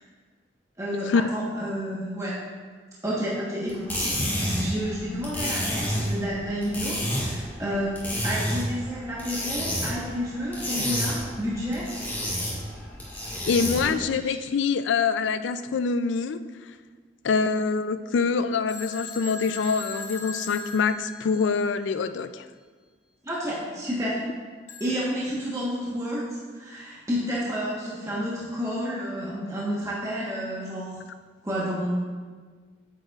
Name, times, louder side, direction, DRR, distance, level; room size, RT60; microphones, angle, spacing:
voice 1, 0.8-2.4 3.0-4.0 4.6-11.9 13.8-14.4 23.2-24.2 24.8-31.0 31.4-32.1, equal, 15° right, -7 dB, 1.2 m, -30 dB
sound 1, 3.7-14.0, equal, 10° left, 1.6 m, -30 dB
voice 2, 13.5-16.4 17.2-22.4, left 5 dB, 80° left, 12 dB, 0.4 m, -25 dB
Telephone, 18.7-21.7 24.7-25.1, left 4 dB, 40° left, 1.0 m, -39 dB
8.4 x 8.0 x 2.4 m, 1.5 s
head